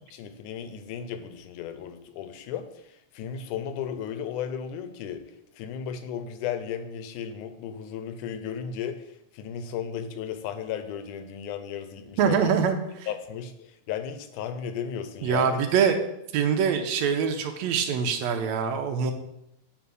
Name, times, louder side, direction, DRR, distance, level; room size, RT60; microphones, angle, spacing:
voice 1, 0.1-5.2 5.5-9.1 9.3-12.7 13.1-15.6, left 8 dB, 85° left, 9 dB, 2.1 m, -35 dB
voice 2, 12.2-12.8 15.2-16.0 16.3-19.1, right 7 dB, 75° right, 6 dB, 1.8 m, -24 dB
8.2 x 3.4 x 6.2 m, 0.81 s
omnidirectional pair, 3.5 m